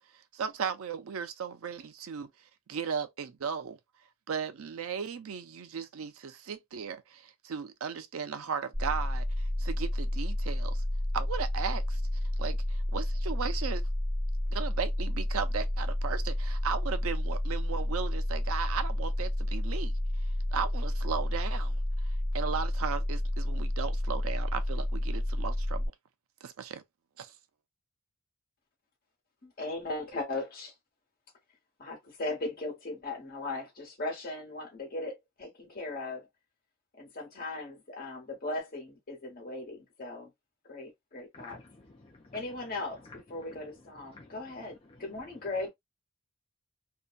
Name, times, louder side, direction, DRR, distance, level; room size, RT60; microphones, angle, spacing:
voice 1, 0.3-2.3 2.7-3.8 4.3-10.8 11.1-12.0 12.4-13.8 14.5-19.9 20.5-21.8 22.3-25.8 26.4-26.8 27.2-27.3, right 6 dB, 75° right, 0.4 m, -36 dB
sound 1, 8.7-25.9, left 1 dB, 30° right, 1.2 m, -30 dB
voice 2, 29.4-30.7 31.8-36.3 37.0-40.3 40.7-41.6 42.3-45.7, left 2 dB, 40° left, 1.2 m, -38 dB
voice 3, 42.0-42.4 44.1-44.3, left 2 dB, 25° left, 0.5 m, -50 dB
2.7 x 2.2 x 2.4 m
head